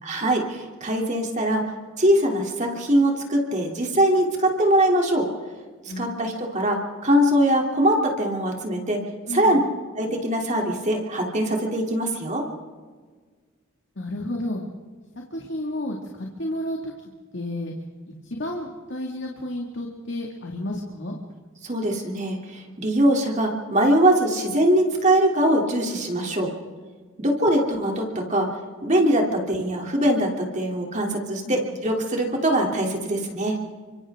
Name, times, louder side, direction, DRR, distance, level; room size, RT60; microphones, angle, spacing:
voice 1, 0.0-1.7 2.0-5.3 6.0-9.0 9.3-9.6 10.0-12.5 21.6-26.5 27.2-28.5 28.8-33.6, right 1 dB, 35° right, 1 dB, 3.0 m, -22 dB
voice 2, 5.9-6.2 9.3-9.6 14.0-14.6 15.3-16.9 17.3-17.7 18.1-18.2 18.4-21.2 27.0-27.2 31.4-31.8, left 1 dB, 60° left, 0 dB, 2.2 m, -31 dB
29.5 x 25.0 x 3.7 m, 1.5 s
head